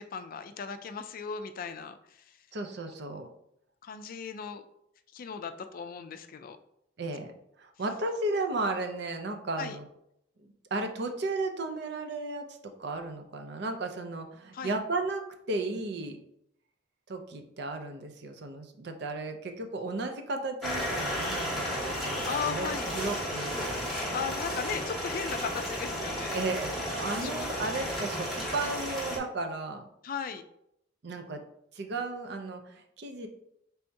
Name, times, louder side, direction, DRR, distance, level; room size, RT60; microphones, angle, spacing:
voice 1, 0.1-2.0 3.8-4.6 5.1-6.6 9.6-9.8 14.5-14.7 22.3-22.9 24.1-26.4 27.2-27.6 30.0-30.4, left 6 dB, 50° left, 9 dB, 0.3 m, -37 dB
voice 2, 2.5-3.3 7.0-7.3 7.6-9.9 10.7-16.2 17.1-24.2 26.3-29.9 31.0-31.4 31.7-33.3, right 2 dB, 65° right, 5 dB, 0.6 m, -34 dB
sound 1, 20.6-29.2, equal, ahead, 1.2 m, -33 dB
3.4 x 2.7 x 4.5 m, 0.76 s
head